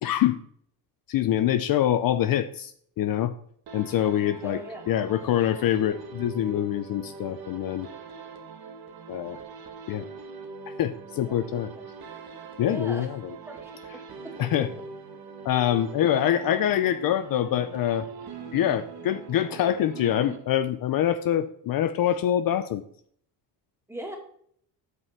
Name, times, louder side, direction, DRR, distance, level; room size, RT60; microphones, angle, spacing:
voice 1, 0.0-0.4 1.1-2.7 3.0-3.3 3.7-4.6 4.9-7.9 9.1-9.4 9.9-10.1 10.8-11.7 12.6-13.3 14.4-14.7 15.4-18.1 18.5-22.8, left 11 dB, 55° left, 11 dB, 0.6 m, -25 dB
sound 1, 3.7-20.9, right 5 dB, 60° right, 1.7 m, -42 dB
voice 2, 4.4-4.8 11.2-11.9 12.6-13.1 13.5-14.8 23.9-24.2, right 1 dB, 5° right, 1 dB, 2.3 m, -40 dB
7.8 x 5.4 x 5.9 m, 0.63 s
cardioid pair, 115°, 42 cm